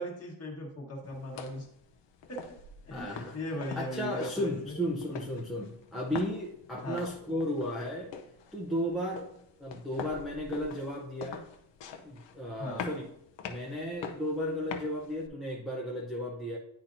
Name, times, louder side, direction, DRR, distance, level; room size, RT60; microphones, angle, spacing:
voice 1, 0.0-1.7 2.3-2.4 2.8-4.7 6.8-7.1 12.6-12.9, equal, 30° left, -2 dB, 1.5 m, -38 dB
sound 1, 1.0-15.3, left 6 dB, 60° left, 0.7 m, -45 dB
voice 2, 2.9-8.1 8.5-11.5 12.0-13.1 13.4-16.6, equal, ahead, -5 dB, 0.6 m, -34 dB
10.5 x 4.2 x 2.6 m, 0.76 s
wide cardioid pair, 180°, 48 cm